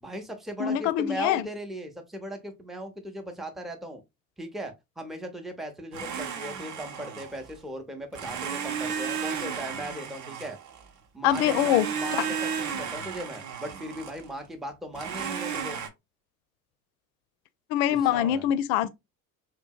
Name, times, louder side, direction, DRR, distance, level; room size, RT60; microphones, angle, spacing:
voice 1, 0.0-4.0 4.4-10.6 11.1-15.8 17.9-18.5, equal, ahead, 0.6 m, -38 dB
voice 2, 0.6-1.4 11.2-11.9 17.7-18.9, left 11 dB, 65° left, 0.5 m, -24 dB
Domestic sounds home sounds, 5.9-7.6 8.1-10.9 11.3-14.3 14.9-15.9, right 7 dB, 45° right, 0.6 m, -34 dB
2.8 x 2.6 x 2.2 m
hypercardioid pair, 65°, 43 cm